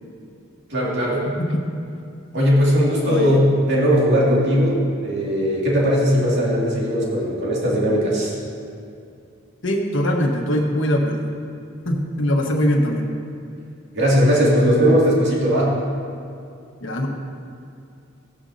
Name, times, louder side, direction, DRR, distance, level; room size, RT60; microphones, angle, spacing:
voice 1, 0.7-1.3 2.3-8.3 13.9-15.7, equal, 55° right, -5 dB, 2.3 m, -18 dB
voice 2, 9.6-11.2 11.8-13.1 16.8-17.1, equal, 70° left, 0 dB, 1.4 m, -21 dB
15.5 x 9.7 x 2.7 m, 2.5 s
head